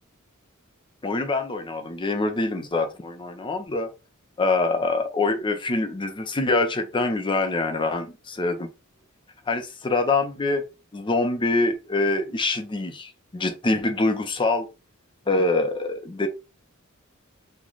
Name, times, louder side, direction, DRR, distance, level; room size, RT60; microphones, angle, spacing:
voice 1, 1.0-3.9 4.4-8.7 9.5-10.6 10.9-14.7 15.3-16.3, left 2 dB, 25° left, 0.5 m, -25 dB
3.1 x 2.2 x 3.8 m
head